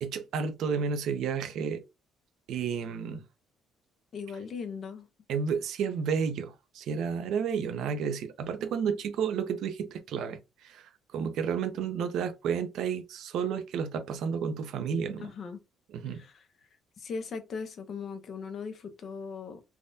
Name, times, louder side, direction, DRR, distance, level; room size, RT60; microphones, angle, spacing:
voice 1, 0.0-1.8 2.5-3.2 5.3-10.8 11.1-15.3 15.9-16.2, right 6 dB, 65° right, 0.5 m, -31 dB
voice 2, 4.1-5.1 15.2-15.6 16.1-16.5 17.0-19.6, left 5 dB, 40° left, 0.6 m, -39 dB
3.5 x 2.2 x 2.6 m
cardioid pair, 145°, 0 cm